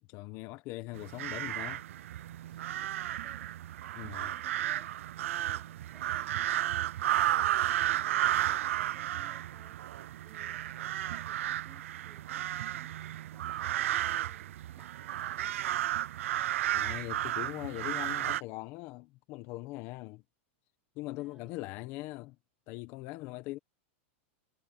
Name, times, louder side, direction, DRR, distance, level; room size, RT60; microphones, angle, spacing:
voice 1, 0.0-1.8 3.9-4.3 16.7-20.2 20.9-22.4 22.7-23.6, left 19 dB, 35° left, 1.1 m, -41 dB
sound 1, 1.0-18.4, right 13 dB, 75° right, 0.5 m, -33 dB
voice 2, 2.5-4.9 5.2-15.8 21.2-21.6, right 4 dB, 10° right, 3.5 m, -63 dB
supercardioid pair, 155°, 7 cm